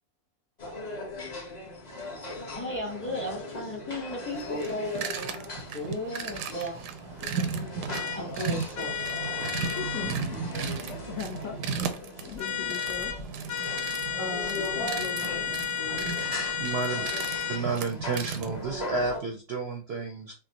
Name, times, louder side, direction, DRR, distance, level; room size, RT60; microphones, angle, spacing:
sound 1, 0.6-19.2, left 2 dB, 35° left, 0.7 m, -39 dB
voice 1, 2.5-6.8 8.1-9.2, left 1 dB, 20° left, 0.3 m, -36 dB
sound 2, 4.3-18.7, right 6 dB, 90° right, 1.2 m, -36 dB
sound 3, 7.9-8.2 8.8-10.2 12.4-13.2 13.5-17.6, left 7 dB, 85° left, 1.4 m, -32 dB
voice 2, 9.8-10.4 11.1-11.9 12.2-13.1 14.2-16.0, left 7 dB, 70° left, 0.8 m, -39 dB
voice 3, 16.6-17.1 17.5-20.3, right 4 dB, 65° right, 0.6 m, -31 dB
5.5 x 2.0 x 2.8 m
omnidirectional pair, 1.7 m